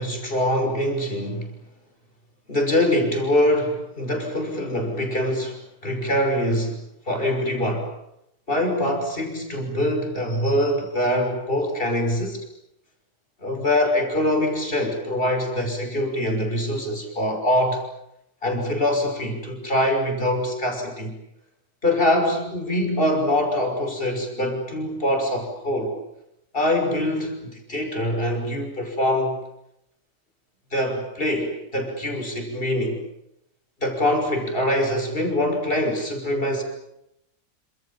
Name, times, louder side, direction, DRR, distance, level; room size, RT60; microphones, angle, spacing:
voice 1, 0.0-1.6 2.5-6.8 7.1-7.9 8.5-12.4 13.4-17.8 18.4-21.2 21.8-26.0 26.5-29.4 30.7-33.0 33.8-36.6, left 1 dB, 35° left, 4 dB, 6.3 m, -24 dB
28.5 x 27.0 x 7.3 m, 0.80 s
omnidirectional pair, 1.6 m